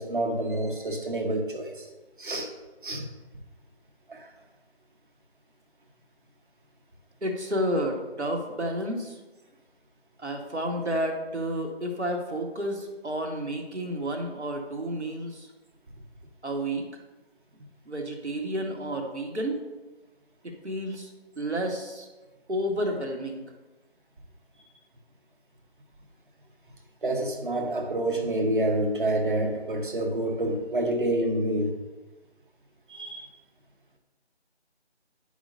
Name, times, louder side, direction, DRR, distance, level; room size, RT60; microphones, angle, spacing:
voice 1, 0.0-1.8 2.2-2.5 2.8-3.0 4.1-4.2 27.0-31.8 32.9-33.2, right 1 dB, 50° right, 3 dB, 1.3 m, -28 dB
voice 2, 7.2-9.2 10.2-15.5 16.4-16.8 17.8-19.6 20.4-22.1 22.5-23.5, right 1 dB, 85° right, 2 dB, 1.7 m, -31 dB
10.5 x 5.0 x 2.7 m, 1.1 s
figure-of-eight pair, 160°, 33 cm